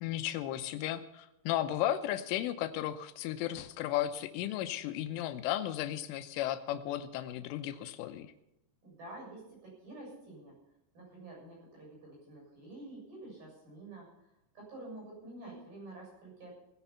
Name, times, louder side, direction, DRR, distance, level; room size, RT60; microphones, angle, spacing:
voice 1, 0.0-8.3, left 12 dB, 85° left, 10 dB, 3.3 m, -34 dB
voice 2, 8.8-10.5 10.9-14.1 14.6-16.5, right 2 dB, 50° right, -3 dB, 9.0 m, -48 dB
18.0 x 10.0 x 5.8 m, 0.86 s
omnidirectional pair, 5.6 m